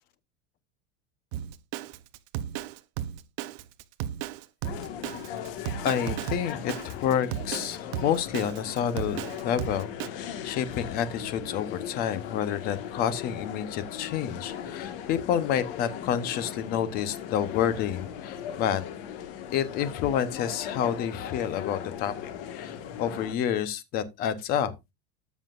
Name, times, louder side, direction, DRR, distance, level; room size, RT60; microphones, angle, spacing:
Drum kit, 1.3-10.1, right 11 dB, 45° right, 0.6 m, -34 dB
sound 1, 4.6-23.3, left 9 dB, 65° left, 1.6 m, -38 dB
voice 1, 5.8-18.8 19.5-24.7, left 9 dB, 30° left, 0.8 m, -29 dB
13.5 x 7.3 x 2.4 m
supercardioid pair, 180°, 30 cm